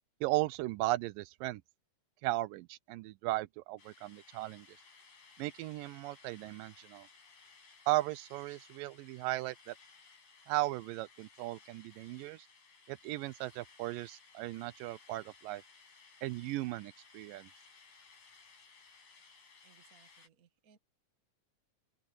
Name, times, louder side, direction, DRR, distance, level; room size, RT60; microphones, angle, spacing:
voice 1, 0.2-1.6 2.2-4.7 5.4-7.1 7.9-9.8 10.5-12.5 12.9-15.6 16.2-17.5, right 18 dB, 85° right, 2.3 m, -36 dB
sound 1, 3.8-20.3, left 5 dB, 75° left, 7.6 m, -60 dB
voice 2, 19.6-20.8, right 7 dB, 35° right, 1.4 m, -66 dB
open air
omnidirectional pair, 3.9 m